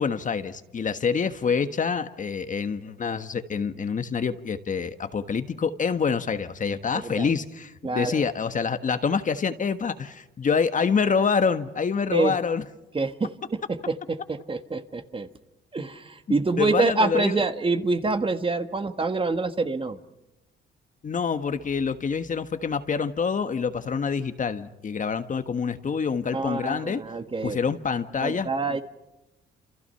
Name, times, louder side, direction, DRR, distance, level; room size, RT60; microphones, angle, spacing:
voice 1, 0.0-12.6 16.6-17.4 21.0-27.0 27.4-28.8, left 5 dB, 40° left, 10 dB, 1.4 m, -26 dB
voice 2, 6.9-7.3 7.8-8.2 12.1-12.3 12.9-15.3 15.7-20.0 26.3-27.6 28.2-28.8, right 3 dB, 25° right, 9 dB, 1.6 m, -26 dB
28.5 x 27.5 x 5.7 m, 0.95 s
cardioid pair, 90°, 20 cm